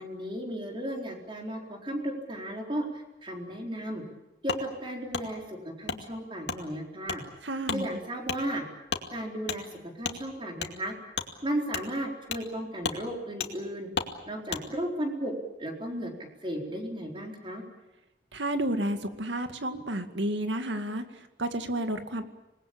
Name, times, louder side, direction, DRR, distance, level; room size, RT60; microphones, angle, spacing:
voice 1, 0.0-4.0 4.4-7.2 7.7-8.6 9.1-10.9 11.4-13.9 14.3-15.3 15.6-16.1 16.4-17.6, right 1 dB, 30° right, 2 dB, 4.4 m, -34 dB
Wood, 4.5-4.6 5.1-5.3 5.9-6.0 6.5-6.6 7.1-7.2 7.6-7.8 8.2-8.4 8.9-9.1 9.5-9.6 10.0-10.2 10.6-10.7 11.1-11.3 11.7-11.9 12.3-12.5 12.8-13.0 13.4-13.5 13.9-14.1 14.5-14.6, left 5 dB, 80° left, 2.4 m, -32 dB
voice 2, 7.4-8.0 18.3-22.2, right 1 dB, 90° right, 8 dB, 2.2 m, -31 dB
26.5 x 20.0 x 8.7 m, 0.93 s
head